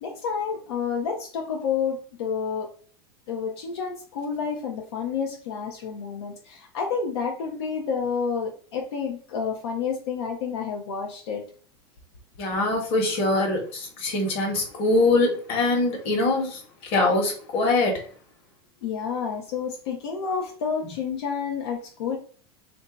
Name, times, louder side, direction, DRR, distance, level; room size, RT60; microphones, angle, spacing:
voice 1, 0.0-2.7 3.3-11.4 18.8-22.2, left 6 dB, 85° left, 0.7 m, -29 dB
voice 2, 12.4-18.1, left 2 dB, 45° left, 1.3 m, -23 dB
2.7 x 2.3 x 3.8 m
supercardioid pair, 130°, 13 cm